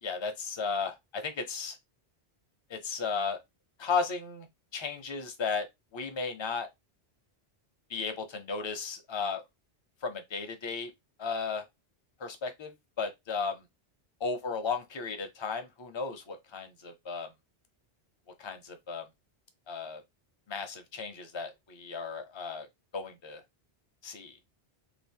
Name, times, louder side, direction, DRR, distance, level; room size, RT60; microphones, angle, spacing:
voice 1, 0.0-1.8 2.7-3.4 3.8-4.5 4.7-5.7 5.9-6.7 7.9-9.4 10.0-10.9 11.2-11.7 12.2-13.6 14.2-17.3 18.4-19.0 19.7-20.0 20.5-22.7 22.9-23.4 24.0-24.3, left 5 dB, 35° left, 0.5 m, -35 dB
3.0 x 2.4 x 3.4 m
omnidirectional pair, 1.1 m